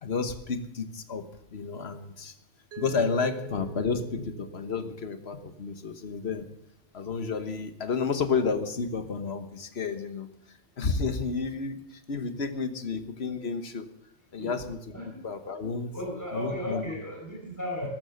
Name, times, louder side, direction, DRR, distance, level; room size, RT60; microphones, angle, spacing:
voice 1, 0.0-1.2 1.5-2.3 2.8-6.5 6.9-10.3 10.8-13.9 14.3-14.8 15.2-15.9 16.3-16.9, left 5 dB, 60° left, 9 dB, 1.5 m, -31 dB
Mallet percussion, 2.7-5.6, right 9 dB, 65° right, 1.0 m, -45 dB
voice 2, 15.9-17.9, equal, 15° left, -2 dB, 5.0 m, -35 dB
14.0 x 12.5 x 6.5 m, 0.80 s
omnidirectional pair, 1.2 m